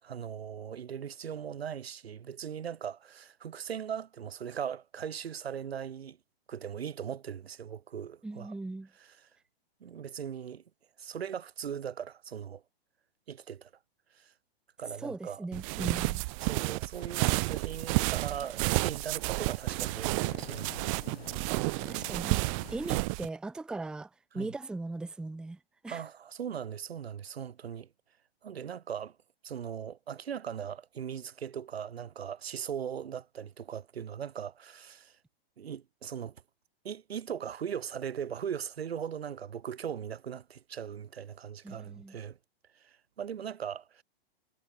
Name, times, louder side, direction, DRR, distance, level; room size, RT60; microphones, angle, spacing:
voice 1, 0.0-6.2 6.5-8.5 9.0-9.2 9.8-10.6 11.0-12.6 13.3-13.7 14.1-14.3 14.8-15.5 16.4-21.4 24.3-24.5 25.9-27.9 28.4-29.2 29.4-35.2 35.6-36.4 36.8-42.4 42.7-44.0, right 8 dB, 90° right, 7.5 m, -39 dB
voice 2, 8.2-8.9 15.0-16.2 21.8-26.0 41.6-42.2, right 2 dB, 5° right, 0.8 m, -39 dB
sound 1, 15.5-23.3, right 29 dB, 35° right, 1.4 m, -31 dB
sound 2, 17.0-23.1, left 9 dB, 85° left, 3.7 m, -52 dB
hypercardioid pair, 155°, 30 cm